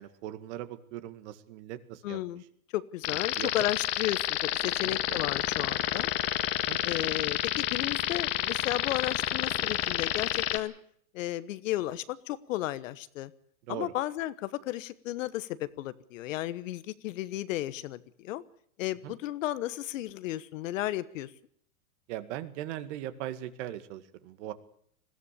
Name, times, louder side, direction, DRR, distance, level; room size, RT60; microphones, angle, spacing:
voice 1, 0.0-2.2 3.4-3.5 4.8-5.2 6.6-6.8 13.7-13.9 19.0-19.1 22.1-24.5, right 13 dB, 50° right, 11 dB, 2.1 m, -39 dB
voice 2, 2.0-2.4 2.7-6.1 6.8-10.7 11.1-13.3 13.7-18.4 18.8-21.3, left 15 dB, 60° left, 16 dB, 1.3 m, -34 dB
sound 1, 3.0-10.6, left 12 dB, 35° left, 1.6 m, -29 dB
20.5 x 15.0 x 8.5 m, 0.65 s
hypercardioid pair, 130°, 44 cm